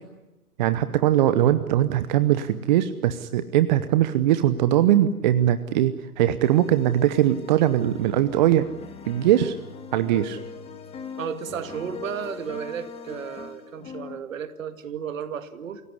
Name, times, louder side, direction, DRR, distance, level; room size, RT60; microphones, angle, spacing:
voice 1, 0.6-8.7 9.1-9.6 9.9-10.4, right 12 dB, 30° right, 12 dB, 0.9 m, -21 dB
sound 1, 6.4-14.2, left 6 dB, 15° left, 1.9 m, -41 dB
voice 2, 11.2-15.8, right 8 dB, 55° right, 10 dB, 2.1 m, -33 dB
27.0 x 17.0 x 9.8 m, 1.0 s
hypercardioid pair, 135°, 46 cm